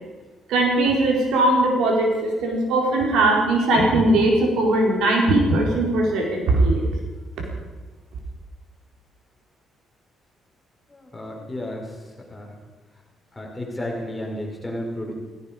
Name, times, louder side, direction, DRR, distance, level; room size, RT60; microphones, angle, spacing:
voice 1, 0.5-6.9, right 2 dB, 85° right, 0 dB, 4.6 m, -19 dB
voice 2, 10.9-12.0 12.3-12.5 13.3-15.2, left 1 dB, 10° left, 0 dB, 5.1 m, -32 dB
16.5 x 16.5 x 5.3 m, 1.2 s
cardioid pair, 90°, 0 cm